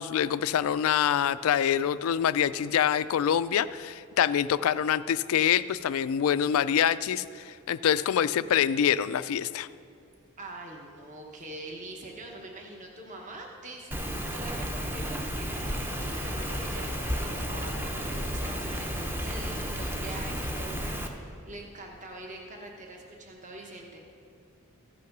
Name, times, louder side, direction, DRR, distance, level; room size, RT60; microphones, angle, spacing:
voice 1, 0.0-9.7, left 9 dB, 65° left, 15 dB, 0.3 m, -25 dB
voice 2, 10.4-24.0, right 2 dB, 35° right, 1 dB, 1.1 m, -44 dB
Rain, 13.9-21.1, equal, 10° right, 0.7 m, -32 dB
Harmonica, 15.5-21.5, left 2 dB, 80° right, 2.8 m, -48 dB
15.0 x 6.0 x 5.9 m, 2.3 s
head